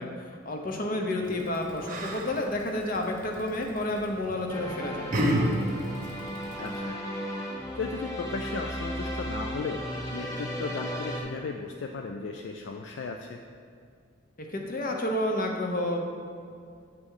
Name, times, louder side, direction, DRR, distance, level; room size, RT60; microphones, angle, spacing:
voice 1, 0.0-5.1 14.4-16.1, left 1 dB, 45° left, 2 dB, 0.8 m, -30 dB
Yell, 1.2-6.8, equal, 40° right, 0.8 m, -33 dB
sound 1, 4.5-11.2, equal, 15° left, 0.9 m, -35 dB
voice 2, 6.6-7.0 7.7-9.8 10.1-13.4, left 4 dB, 60° left, 3 dB, 0.3 m, -36 dB
8.1 x 3.4 x 5.5 m, 2.3 s
head